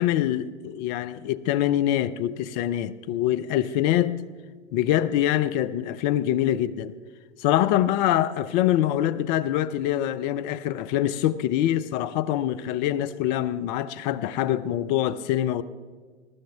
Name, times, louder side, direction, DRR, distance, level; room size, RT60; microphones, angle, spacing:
voice 1, 0.0-4.2 4.7-6.9 7.4-15.6, left 12 dB, 40° left, 0.6 m, -24 dB
21.0 x 12.5 x 3.5 m
hypercardioid pair, 105°, 34 cm